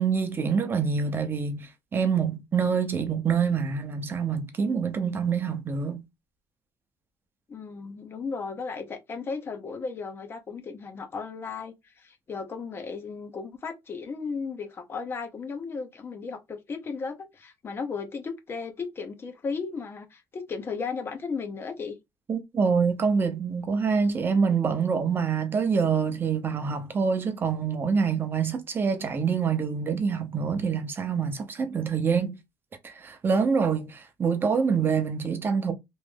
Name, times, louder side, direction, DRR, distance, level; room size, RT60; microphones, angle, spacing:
voice 1, 0.0-6.0 22.3-32.4 32.8-35.7, right 6 dB, 25° right, 0.7 m, -26 dB
voice 2, 7.5-22.0, left 5 dB, 30° left, 0.8 m, -35 dB
3.1 x 2.6 x 3.5 m
cardioid pair, 150°, 8 cm